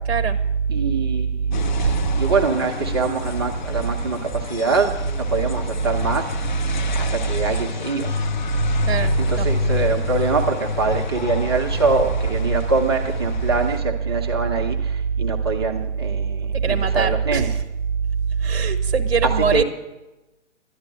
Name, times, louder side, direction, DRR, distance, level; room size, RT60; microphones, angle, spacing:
voice 1, 0.1-0.4 1.8-2.0 8.9-9.5 16.5-17.6 18.4-19.6, right 6 dB, 50° right, 8 dB, 0.9 m, -21 dB
voice 2, 0.7-1.7 2.2-5.0 5.3-6.5 6.9-8.1 9.2-17.5 19.2-19.6, right 4 dB, 20° right, 2 dB, 0.6 m, -24 dB
sound 1, 1.5-13.8, left 5 dB, 35° left, 0.5 m, -28 dB
11.5 x 10.5 x 7.5 m, 1.1 s
figure-of-eight pair, 135°, 39 cm